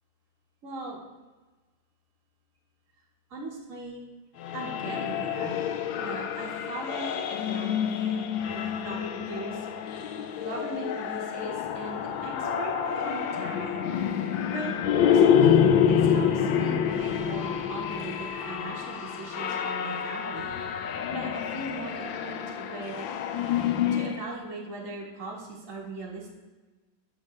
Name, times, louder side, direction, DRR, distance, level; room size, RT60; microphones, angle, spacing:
voice 1, 0.6-1.0 3.3-4.0 4.5-5.6 6.0-7.1 7.4-10.0 10.4-13.8 14.5-14.7 15.0-20.5 20.8-23.1 23.9-26.3, right 2 dB, 45° right, -4 dB, 1.9 m, -39 dB
sound 1, 4.4-24.3, left 8 dB, 80° left, 1.4 m, -27 dB
15.5 x 5.2 x 3.3 m, 1.2 s
omnidirectional pair, 2.1 m